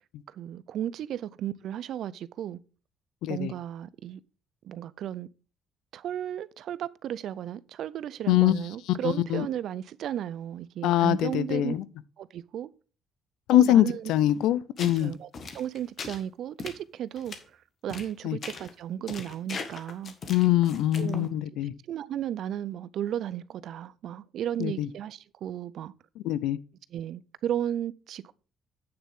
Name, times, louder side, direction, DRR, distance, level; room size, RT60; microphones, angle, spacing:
voice 1, 0.3-2.6 3.3-4.2 4.6-5.3 5.9-11.7 12.2-12.7 13.5-14.1 14.8-15.3 15.5-17.4 17.8-20.1 21.0-21.3 21.9-25.9 26.9-28.3, right 10 dB, 70° right, 0.4 m, -34 dB
voice 2, 3.2-3.5 8.3-8.5 9.0-9.5 10.8-11.8 13.5-15.1 18.2-18.4 20.3-21.7 24.6-24.9 26.2-26.6, left 13 dB, 85° left, 0.5 m, -23 dB
sound 1, 14.8-15.0 15.3-16.2 16.6-16.8 17.2-17.4 17.9-18.1 18.4-18.7 19.1-21.3, left 5 dB, 50° left, 1.5 m, -39 dB
8.8 x 6.9 x 3.6 m
cardioid pair, 85°, 0 cm